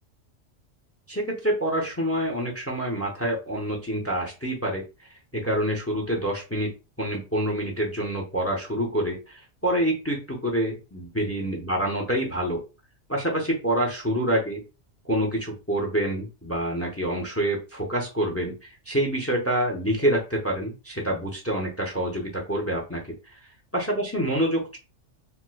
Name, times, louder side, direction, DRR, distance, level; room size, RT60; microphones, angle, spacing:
voice 1, 1.1-6.7 7.0-12.6 13.1-14.6 15.0-23.4 23.7-24.8, right 1 dB, 15° left, 1 dB, 0.5 m, -27 dB
4.5 x 2.1 x 2.2 m, 0.29 s
omnidirectional pair, 1.3 m